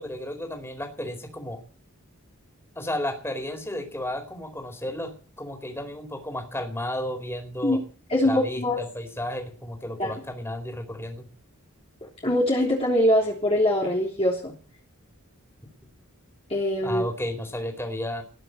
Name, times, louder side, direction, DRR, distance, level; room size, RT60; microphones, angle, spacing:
voice 1, 0.0-1.6 2.8-7.8 8.2-11.3 16.8-18.2, left 1 dB, 10° left, 4 dB, 4.3 m, -33 dB
voice 2, 8.1-8.8 10.0-10.2 12.2-14.5 16.5-17.0, left 1 dB, 25° left, -3 dB, 3.4 m, -23 dB
20.0 x 7.7 x 7.9 m, 0.40 s
head